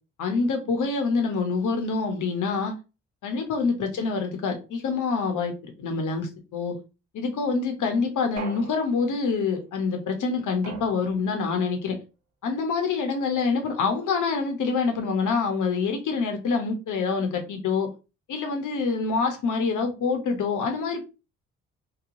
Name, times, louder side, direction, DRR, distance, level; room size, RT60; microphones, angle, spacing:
voice 1, 0.2-2.7 3.2-6.8 7.1-12.0 12.4-17.9 18.3-21.0, left 4 dB, 55° left, 4 dB, 0.8 m, -26 dB
sound 1, 8.4-9.4 10.6-11.5, right 3 dB, 50° right, 1.0 m, -41 dB
2.9 x 2.2 x 2.5 m, 0.30 s
hypercardioid pair, 45°, 36 cm